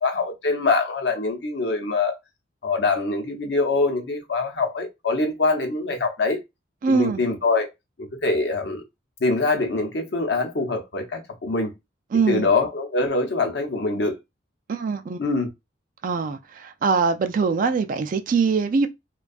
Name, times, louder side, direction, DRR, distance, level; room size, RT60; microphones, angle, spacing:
voice 1, 0.0-2.2 2.6-6.4 6.9-7.7 8.0-8.8 9.2-11.7 12.3-14.1 15.2-15.5, left 3 dB, 65° left, 0.7 m, -24 dB
voice 2, 6.8-7.2 12.1-12.5 14.7-15.2 16.0-18.9, right 5 dB, 45° right, 0.3 m, -22 dB
2.5 x 2.3 x 2.3 m
head